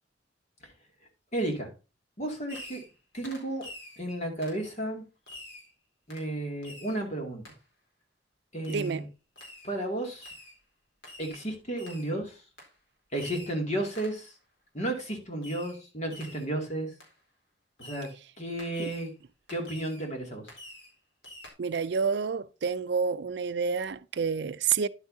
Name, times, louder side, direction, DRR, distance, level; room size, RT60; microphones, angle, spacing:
voice 1, 1.3-1.7 2.2-2.8 3.1-3.6 4.0-5.0 6.1-7.4 8.5-9.0 9.6-10.3 11.2-12.4 13.1-14.3 14.7-16.9 17.8-18.1 18.4-19.1 19.5-20.5, right 1 dB, 40° left, 2.5 m, -33 dB
Fireworks, 2.5-3.0 3.2-4.0 4.4-4.6 5.3-5.7 6.1-6.3 6.6-7.0 7.4-7.6 8.6-9.0 9.4-9.7 10.2-10.6 11.0-11.4 11.8-12.1 12.6-12.7 13.1-13.6 13.9-14.2 15.4-15.8 16.1-16.5 17.0-17.1 17.8-18.2 18.6-19.1 19.5-20.1 20.5-20.9 21.2-21.5, left 1 dB, 70° left, 4.1 m, -47 dB
voice 2, 8.7-9.1 18.8-18.9 21.6-24.9, right 6 dB, 65° right, 0.4 m, -29 dB
10.5 x 8.1 x 2.7 m
head